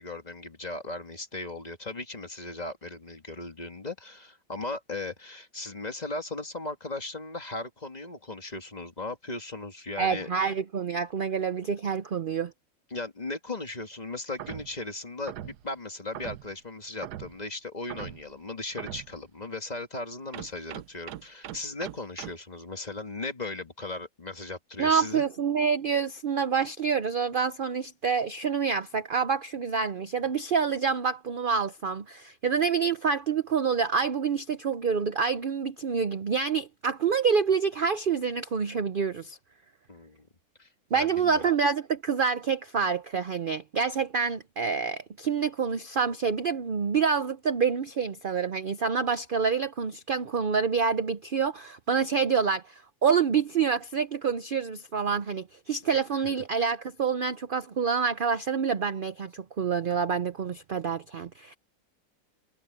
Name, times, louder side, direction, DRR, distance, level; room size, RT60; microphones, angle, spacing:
voice 1, 0.0-10.3 12.9-25.2 39.9-40.3 40.6-41.5, left 2 dB, 25° left, 1.8 m, -37 dB
voice 2, 10.0-12.5 24.8-39.4 40.9-61.6, right 6 dB, 55° right, 0.6 m, -27 dB
sound 1, 14.4-14.8 15.3-15.7 16.1-16.5 17.0-17.4 17.9-18.3 18.8-19.2 20.3-22.3, right 12 dB, 75° right, 1.3 m, -40 dB
omnidirectional pair, 1.8 m